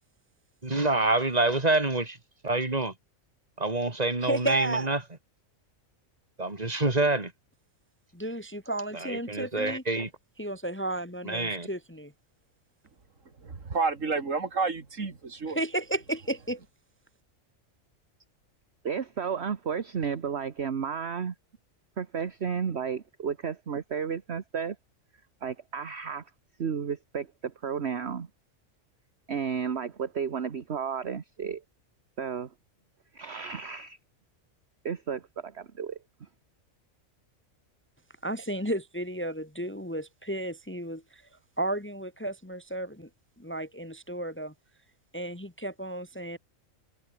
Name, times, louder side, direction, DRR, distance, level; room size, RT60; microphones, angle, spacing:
voice 1, 0.6-2.2 2.4-2.9 3.6-5.0 6.4-7.3 8.9-10.1 11.2-11.7, right 2 dB, 30° right, 2.9 m, -27 dB
voice 2, 4.2-4.9 8.1-9.8 10.4-12.1 15.5-16.6 38.2-41.2 41.6-43.1 43.4-44.5 45.1-46.4, right 1 dB, 10° left, 1.3 m, -33 dB
voice 3, 13.4-15.6, right 4 dB, 70° right, 2.7 m, -30 dB
voice 4, 18.8-21.3 22.0-24.8 25.4-26.2 26.6-28.3 29.3-31.6 32.2-32.5 33.1-34.0 34.8-36.0, right 6 dB, 55° right, 1.5 m, -32 dB
omnidirectional pair, 1.4 m